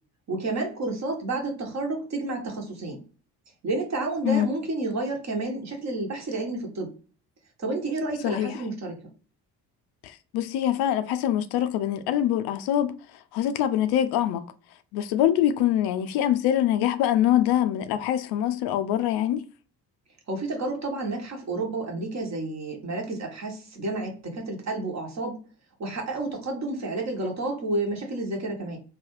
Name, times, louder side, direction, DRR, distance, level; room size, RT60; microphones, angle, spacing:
voice 1, 0.3-3.0 3.6-6.9 7.6-9.0 20.3-25.4 25.8-28.8, right 2 dB, 35° right, 1.2 m, -30 dB
voice 2, 8.2-8.6 10.0-13.0 13.3-14.5 14.9-19.4, left 11 dB, 55° left, 0.5 m, -24 dB
2.9 x 2.3 x 3.1 m
figure-of-eight pair, 50°, 48 cm